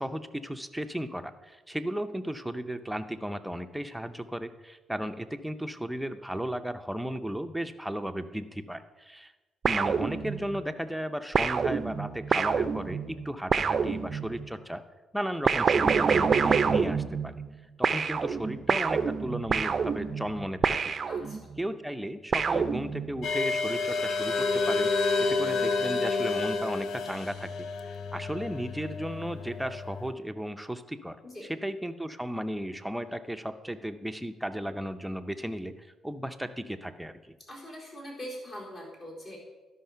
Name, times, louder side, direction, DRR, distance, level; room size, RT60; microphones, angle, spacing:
voice 1, 0.0-9.3 9.6-14.8 15.1-17.3 17.8-20.9 21.6-24.9 25.3-31.2 31.4-35.7 36.0-37.2, equal, 5° right, 8 dB, 0.6 m, -35 dB
sound 1, 9.6-10.6 11.3-14.5 15.5-17.6 17.8-21.6 22.3-23.3, right 6 dB, 45° right, 0.5 m, -27 dB
voice 2, 21.1-21.4 31.2-31.5 37.5-39.4, equal, 40° left, -3 dB, 4.0 m, -42 dB
sound 2, 23.2-30.1, left 3 dB, 75° left, 0.6 m, -29 dB
12.0 x 5.7 x 5.6 m, 1.2 s
cardioid pair, 90°, 0 cm